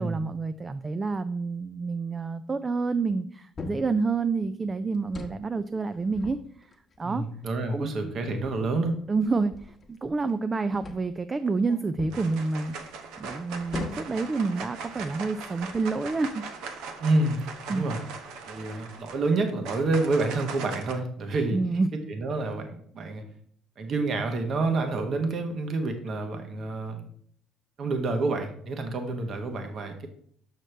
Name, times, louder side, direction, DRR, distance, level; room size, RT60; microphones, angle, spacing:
voice 1, 0.0-6.4 7.0-7.2 7.7-8.0 9.1-12.8 13.2-16.4 17.7-17.9 21.5-21.9, right 4 dB, 25° right, 11 dB, 0.3 m, -28 dB
sound 1, 3.6-4.0 4.9-5.5 5.9-7.0 7.7-7.8 8.4-10.4 10.7-11.2 12.0-12.3 13.7-14.2 15.0-15.1 15.6-16.1, left 4 dB, 30° left, 1.1 m, -41 dB
voice 2, 7.0-9.0 17.0-17.4 17.7-18.0 18.5-21.8 22.1-23.2 23.8-27.0 27.8-30.1, right 3 dB, 50° right, 5 dB, 1.1 m, -28 dB
sound 2, 11.4-11.8 12.1-20.9, right 4 dB, 80° right, 0.9 m, -40 dB
6.4 x 6.3 x 3.3 m, 0.62 s
cardioid pair, 90°, 0 cm